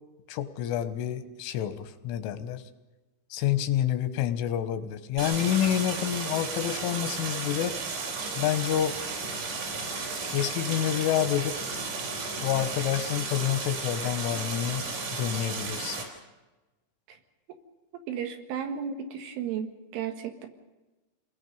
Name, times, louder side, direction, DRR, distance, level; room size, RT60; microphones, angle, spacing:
voice 1, 0.3-2.6 3.3-7.7 8.4-9.0 10.3-11.6 12.4-16.0, left 11 dB, 90° left, 10 dB, 3.5 m, -28 dB
Stream, 5.2-16.0, right 4 dB, 55° right, 5.4 m, -34 dB
voice 2, 18.1-20.5, right 8 dB, 85° right, 6 dB, 4.2 m, -34 dB
28.0 x 20.5 x 5.4 m, 1.1 s
omnidirectional pair, 5.5 m